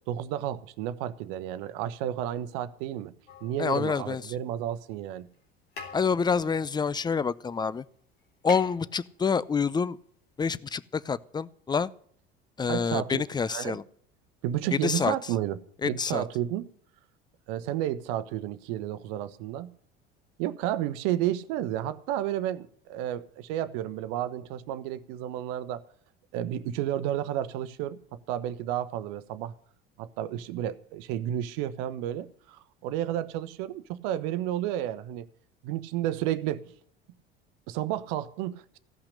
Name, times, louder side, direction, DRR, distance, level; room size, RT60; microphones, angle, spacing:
voice 1, 0.1-3.1 3.4-5.3 12.7-13.2 13.5-13.8 14.4-15.6 15.8-16.6 17.5-19.7 20.4-25.8 26.3-28.0 28.3-29.5 30.0-35.3 35.6-36.6 37.7-38.8, right 12 dB, 65° right, 1.0 m, -31 dB
sound 1, 3.3-4.4 5.3-5.4 5.7-7.6 7.9-8.0 8.2-9.6 10.7-10.8, left 3 dB, 80° left, 3.4 m, -45 dB
voice 2, 3.6-4.2 5.9-7.8 8.4-10.0 10.4-11.9 12.6-13.8 14.7-15.1 15.8-16.2, left 5 dB, 15° left, 0.5 m, -27 dB
15.5 x 5.8 x 10.0 m
hypercardioid pair, 65°, 31 cm